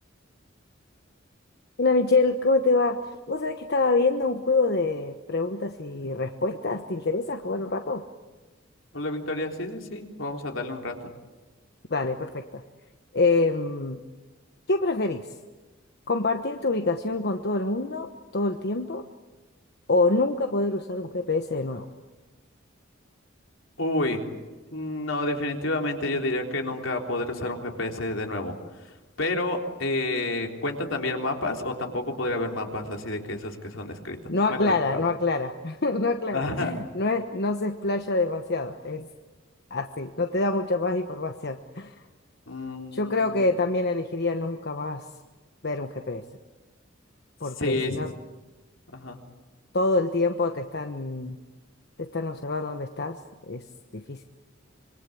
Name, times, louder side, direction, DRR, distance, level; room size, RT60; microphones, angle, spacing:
voice 1, 1.8-3.0 3.3-8.0 11.9-12.6 13.1-14.0 14.7-15.3 16.1-18.1 18.3-19.0 19.9-21.9 34.3-39.0 39.7-41.9 42.9-45.0 45.6-46.2 47.4-48.1 49.7-51.4 52.0-53.2 53.5-53.6 53.9-54.2, left 3 dB, 55° left, 6 dB, 1.2 m, -26 dB
voice 2, 8.9-11.1 23.8-24.3 24.7-35.0 36.3-36.8 42.5-43.4 47.4-48.1 48.9-49.2, left 2 dB, 80° left, 2 dB, 3.7 m, -30 dB
26.0 x 24.5 x 8.6 m, 1.2 s
head